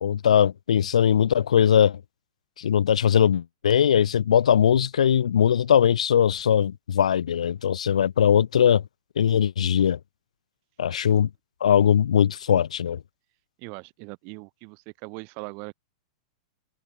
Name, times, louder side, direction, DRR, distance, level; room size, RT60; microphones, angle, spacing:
voice 1, 0.0-2.0 2.6-8.8 9.2-10.0 10.8-11.3 11.6-13.0, left 8 dB, 85° left, 1.5 m, -20 dB
voice 2, 13.6-15.7, right 35 dB, 50° right, 4.1 m, -40 dB
hypercardioid pair, 120°, 4 cm